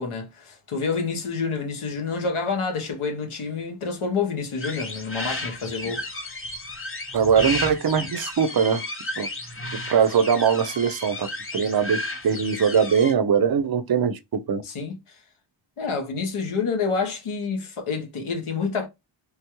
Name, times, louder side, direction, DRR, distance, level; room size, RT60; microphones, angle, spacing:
voice 1, 0.0-6.0 8.0-8.1 14.6-15.2 15.8-18.9, left 5 dB, 80° left, 1.0 m, -28 dB
sound 1, 4.6-13.1, left 2 dB, 25° left, 0.7 m, -33 dB
voice 2, 7.1-8.8 9.2-9.3 9.9-14.6, right 7 dB, 50° right, 0.5 m, -21 dB
3.4 x 2.2 x 2.9 m
wide cardioid pair, 65°, 49 cm